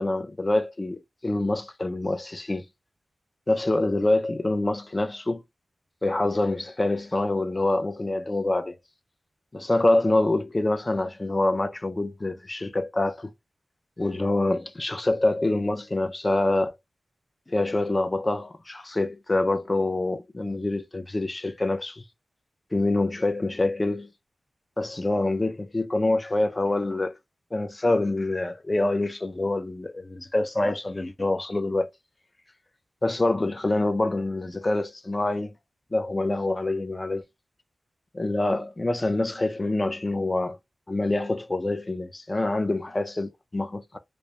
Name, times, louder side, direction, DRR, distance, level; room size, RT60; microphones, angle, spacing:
voice 1, 0.0-2.6 3.5-5.4 6.0-8.7 9.5-13.3 14.0-16.7 17.5-22.0 22.7-24.1 24.8-27.2 27.5-31.9 33.0-35.5 35.9-37.2 38.1-40.6 40.9-44.0, left 2 dB, 30° left, 0.4 m, -26 dB
2.2 x 2.0 x 2.8 m
cardioid pair, 50°, 0 cm